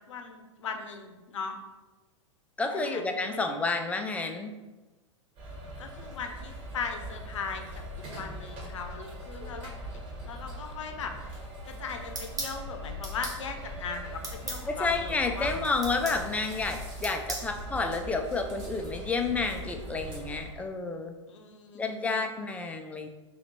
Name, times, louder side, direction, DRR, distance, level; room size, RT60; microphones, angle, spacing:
voice 1, 0.1-1.6 2.7-3.5 5.8-9.7 10.2-11.1 11.7-15.5 21.3-22.3, left 5 dB, 75° left, 5 dB, 0.6 m, -39 dB
voice 2, 2.6-4.6 14.7-21.1 21.7-23.1, left 3 dB, 10° left, 4 dB, 0.3 m, -30 dB
sound 1, 5.4-20.5, equal, 35° right, 1.3 m, -41 dB
sound 2, 12.2-12.6 13.0-13.4 14.2-14.6 15.8-16.2 17.0-17.5, right 3 dB, 20° right, 0.9 m, -36 dB
3.1 x 2.9 x 4.2 m, 1.1 s
hypercardioid pair, 105°, 16 cm